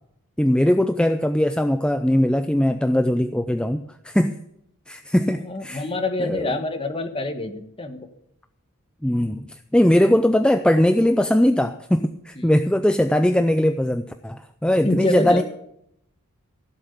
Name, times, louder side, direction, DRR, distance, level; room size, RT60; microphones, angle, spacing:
voice 1, 0.4-4.3 4.9-5.8 6.2-6.5 9.0-15.4, left 1 dB, 5° left, 8 dB, 0.4 m, -20 dB
voice 2, 5.4-8.1 12.3-12.5 14.8-15.4, left 2 dB, 25° left, 7 dB, 1.4 m, -26 dB
16.0 x 7.4 x 8.3 m, 0.77 s
head